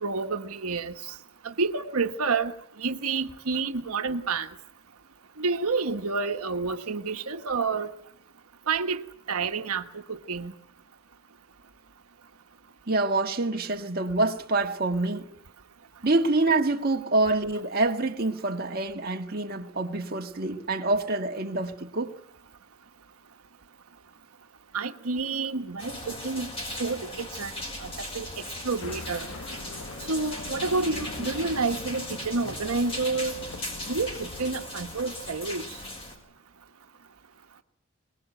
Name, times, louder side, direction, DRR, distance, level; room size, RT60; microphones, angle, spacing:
voice 1, 0.0-1.1 1.4-4.5 5.4-7.9 8.7-9.0 9.3-10.5 24.7-26.5 26.8-27.5 27.8-29.3 30.1-33.3 33.9-35.8, right 4 dB, 90° right, 1.3 m, -29 dB
voice 2, 12.9-15.3 16.0-22.1, right 2 dB, 45° right, 1.6 m, -26 dB
sound 1, 25.8-36.1, left 1 dB, 25° left, 6.4 m, -38 dB
sound 2, 28.8-34.6, left 3 dB, 70° left, 1.3 m, -43 dB
23.5 x 20.5 x 9.2 m
head